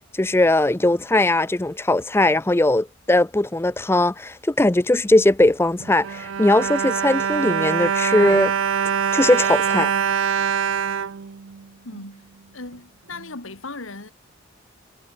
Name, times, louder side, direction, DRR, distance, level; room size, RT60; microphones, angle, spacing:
voice 1, 0.2-8.5 9.1-9.9, left 2 dB, 10° left, 0.5 m, -19 dB
Bowed string instrument, 5.8-12.0 12.7-12.8 13.1-13.3, right 7 dB, 70° right, 0.5 m, -24 dB
voice 2, 11.8-12.2 12.5-14.1, left 3 dB, 80° left, 2.5 m, -37 dB
head